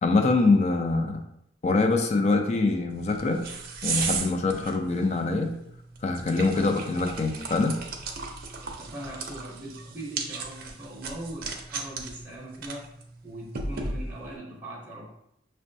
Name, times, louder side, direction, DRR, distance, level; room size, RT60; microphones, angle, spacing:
voice 1, 0.0-1.2 1.6-3.4 3.8-5.5 6.0-7.8, left 3 dB, 35° left, 5 dB, 0.4 m, -24 dB
sound 1, 2.9-14.4, right 4 dB, 50° right, 0.5 m, -36 dB
voice 2, 8.5-12.9 13.2-15.2, right 1 dB, 10° right, -6 dB, 0.7 m, -40 dB
6.0 x 2.2 x 2.6 m, 0.76 s
head